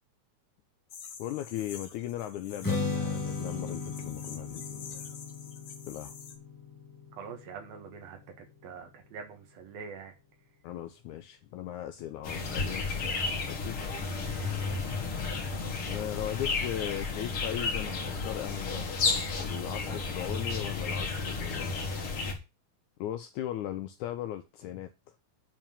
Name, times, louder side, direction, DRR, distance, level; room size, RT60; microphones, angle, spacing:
sound 1, 0.9-6.4, left 6 dB, 65° left, 1.4 m, -47 dB
voice 1, 1.2-5.1 5.9-6.1 10.6-12.9 13.4-13.8 15.9-19.0 19.4-21.9 23.0-24.9, left 12 dB, 85° left, 1.7 m, -38 dB
Strum, 2.6-8.9, left 3 dB, 10° left, 1.0 m, -37 dB
voice 2, 7.1-10.1 14.2-14.7, right 6 dB, 75° right, 3.3 m, -45 dB
sound 2, 12.2-22.3, left 4 dB, 45° left, 2.4 m, -32 dB
9.1 x 4.7 x 7.2 m
omnidirectional pair, 4.3 m